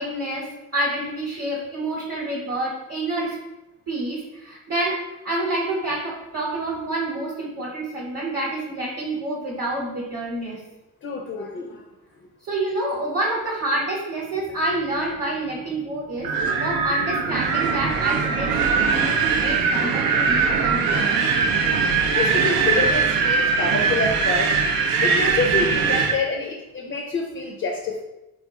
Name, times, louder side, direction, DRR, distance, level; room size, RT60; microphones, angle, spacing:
voice 1, 0.0-3.4 3.9-10.6 12.4-18.6 18.9-21.2, right 1 dB, 35° right, -3 dB, 0.9 m, -28 dB
voice 2, 11.0-11.8 22.1-24.6 25.0-28.0, left 3 dB, 40° left, 2 dB, 0.4 m, -27 dB
Wind, 16.2-26.2, right 5 dB, 85° right, 0.5 m, -21 dB
2.4 x 2.3 x 3.9 m, 0.95 s
cardioid pair, 75°, 35 cm